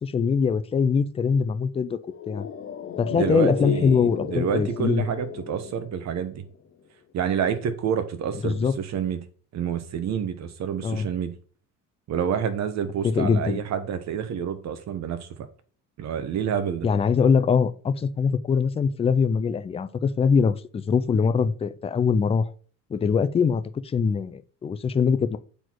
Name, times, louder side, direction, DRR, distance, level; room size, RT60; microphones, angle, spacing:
voice 1, 0.0-2.0 2.3-2.5 3.0-5.0 8.4-8.8 10.8-11.1 13.0-13.6 16.8-22.5 22.9-25.4, left 6 dB, 20° left, 0.4 m, -23 dB
sound 1, 2.0-6.6 6.8-6.9, left 8 dB, 40° left, 1.0 m, -34 dB
voice 2, 3.1-6.5 7.1-9.2 9.5-11.3 12.1-15.3 16.0-16.9, right 8 dB, 55° right, 1.2 m, -28 dB
8.0 x 4.2 x 4.6 m
cardioid pair, 135°, 33 cm